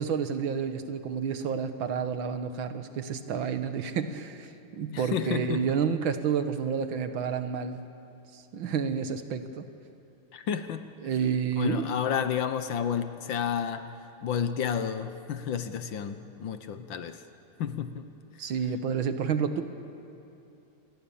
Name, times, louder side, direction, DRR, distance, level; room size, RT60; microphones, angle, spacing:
voice 1, 0.0-7.8 8.3-9.7 11.0-11.8 18.4-19.6, right 6 dB, 70° right, 9 dB, 1.8 m, -30 dB
voice 2, 4.9-5.6 10.3-10.9 11.6-13.9 14.2-17.2 17.6-18.1, left 8 dB, 65° left, 10 dB, 1.6 m, -31 dB
27.5 x 20.0 x 7.1 m, 2.9 s
omnidirectional pair, 2.4 m